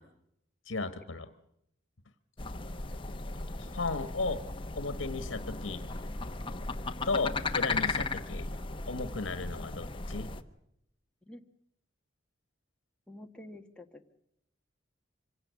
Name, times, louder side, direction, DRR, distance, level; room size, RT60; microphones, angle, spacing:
voice 1, 0.7-1.3 3.6-4.4 4.8-5.8 7.1-8.5 8.9-10.3, left 3 dB, 85° left, 10 dB, 1.2 m, -34 dB
sound 1, 2.4-10.4, left 3 dB, 25° left, 1.1 m, -36 dB
voice 2, 13.1-14.2, left 1 dB, 5° left, 2 dB, 1.3 m, -49 dB
25.5 x 17.0 x 8.1 m, 0.78 s
head